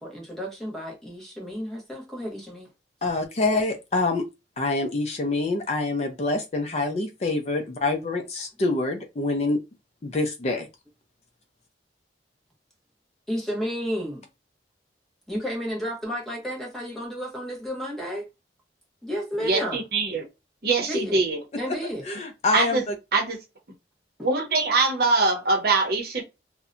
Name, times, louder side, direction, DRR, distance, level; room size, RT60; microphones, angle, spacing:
voice 1, 0.0-2.7 13.3-14.2 15.3-18.3 19.0-19.8 20.9-21.2 21.6-22.1 24.2-24.3, equal, ahead, 0.8 m, -32 dB
voice 2, 3.0-4.2 4.6-9.6 10.0-10.7 22.1-22.9, left 2 dB, 35° left, 0.4 m, -26 dB
voice 3, 19.4-20.2 20.6-21.4 22.5-22.8 23.1-23.4 24.2-26.2, right 3 dB, 55° right, 0.7 m, -23 dB
2.7 x 2.1 x 2.4 m
head